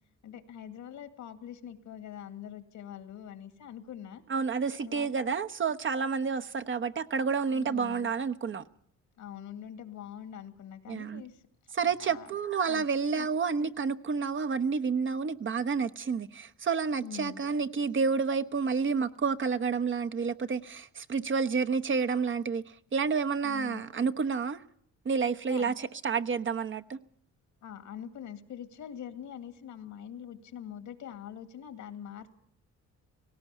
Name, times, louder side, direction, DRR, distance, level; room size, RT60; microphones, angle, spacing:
voice 1, 0.2-4.2 4.8-5.3 7.5-8.1 9.2-11.4 11.8-12.3 12.7-12.9 13.2-13.3 17.0-17.4 23.4-23.8 25.5-25.7 27.6-32.3, left 9 dB, 75° left, 2.2 m, -44 dB
voice 2, 4.3-8.6 10.9-11.2 11.7-22.6 22.9-24.6 25.0-27.0, right 5 dB, 40° right, 1.0 m, -29 dB
18.0 x 17.0 x 8.3 m
cardioid pair, 90°, 30 cm